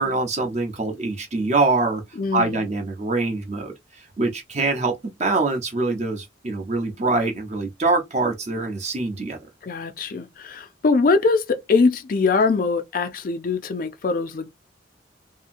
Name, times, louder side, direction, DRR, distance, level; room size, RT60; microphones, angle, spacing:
voice 1, 0.0-2.0 2.3-9.4, right 3 dB, 35° right, 0.6 m, -24 dB
voice 2, 2.2-2.7 9.6-14.5, left 4 dB, 45° left, 0.4 m, -22 dB
2.8 x 2.6 x 2.5 m
head